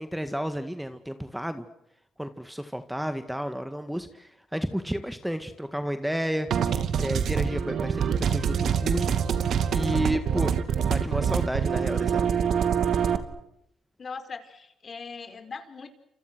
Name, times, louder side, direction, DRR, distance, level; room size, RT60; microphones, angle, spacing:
voice 1, 0.0-1.7 2.2-9.2 9.7-10.6 10.9-12.3, equal, 5° right, 9 dB, 1.9 m, -31 dB
sound 1, 6.5-13.2, right 7 dB, 65° right, 2.5 m, -25 dB
voice 2, 14.0-15.9, left 5 dB, 40° left, 9 dB, 4.9 m, -40 dB
30.0 x 28.0 x 6.3 m, 0.81 s
cardioid pair, 90°, 0 cm